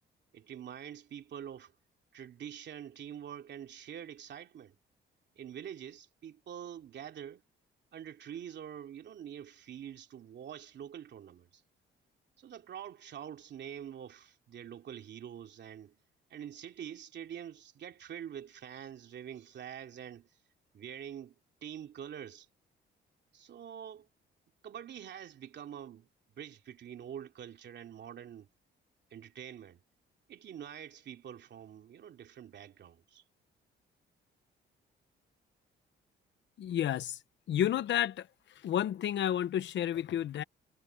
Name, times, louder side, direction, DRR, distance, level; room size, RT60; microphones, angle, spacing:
voice 1, 0.3-1.7 2.1-4.7 5.4-7.4 7.9-11.6 12.4-16.0 16.3-20.3 20.7-22.5 23.3-24.1 24.6-26.1 26.3-28.5 29.1-29.8 30.3-33.2, right 9 dB, 60° right, 2.8 m, -46 dB
voice 2, 36.6-37.2 37.5-38.3 38.5-40.4, left 10 dB, 65° left, 0.9 m, -31 dB
cardioid pair, 90°, 20 cm